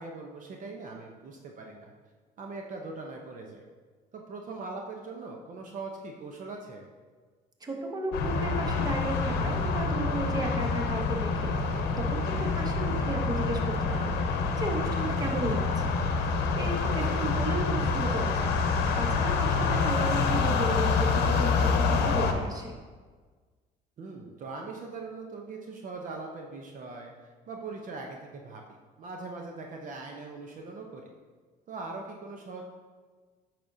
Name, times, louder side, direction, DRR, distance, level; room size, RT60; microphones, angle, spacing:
voice 1, 0.0-1.9 2.4-3.6 4.1-6.9 16.8-16.9 24.0-27.1 27.5-31.1 31.7-32.6, right 3 dB, 50° right, 1 dB, 0.8 m, -41 dB
voice 2, 7.6-15.9 16.6-18.6 19.0-22.7, right 2 dB, 20° right, 2 dB, 1.0 m, -34 dB
sound 1, 8.1-22.3, left 4 dB, 85° left, 0.8 m, -27 dB
8.5 x 5.9 x 2.7 m, 1.4 s
cardioid pair, 110°, 17 cm